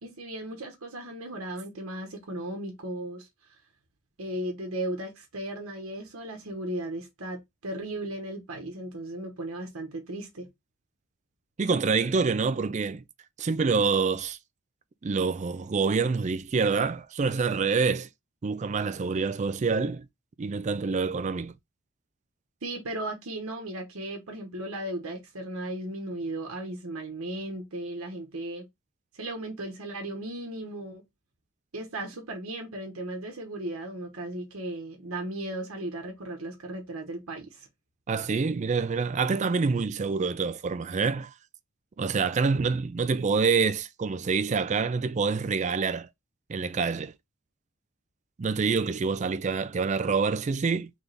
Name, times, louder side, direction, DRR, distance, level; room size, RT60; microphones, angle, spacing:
voice 1, 0.0-3.6 4.2-10.5 22.6-28.6 29.1-31.0 31.7-37.7, right 1 dB, 80° right, 1.1 m, -36 dB
voice 2, 11.6-13.0 13.4-14.4 15.0-18.1 18.4-20.1 20.4-21.5 38.1-41.3 42.0-46.1 46.5-47.1 48.4-50.9, right 4 dB, 35° right, 0.4 m, -26 dB
3.6 x 3.3 x 3.9 m
head